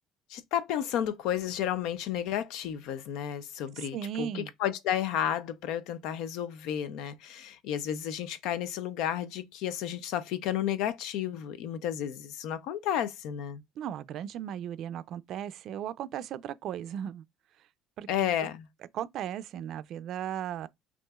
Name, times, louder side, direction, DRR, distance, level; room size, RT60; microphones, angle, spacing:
voice 1, 0.3-13.6 18.1-18.7, left 10 dB, 75° left, 0.5 m, -32 dB
voice 2, 3.8-4.5 13.8-17.2 18.0-18.3 18.9-20.7, right 10 dB, 60° right, 0.4 m, -36 dB
6.0 x 2.5 x 2.3 m
cardioid pair, 110°, 0 cm